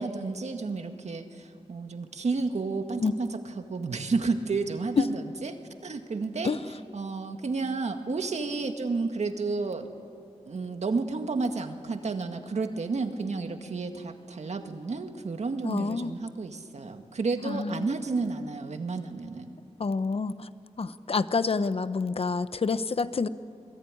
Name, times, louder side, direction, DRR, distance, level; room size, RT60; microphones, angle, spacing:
voice 1, 0.0-6.5 6.9-9.9 10.5-19.5, right 4 dB, 70° right, 6 dB, 1.9 m, -31 dB
voice 2, 15.6-16.1 17.4-17.9 19.8-20.5 20.8-23.3, left 4 dB, 55° left, 14 dB, 0.9 m, -27 dB
28.0 x 20.5 x 9.9 m, 2.7 s
wide cardioid pair, 80°, 12 cm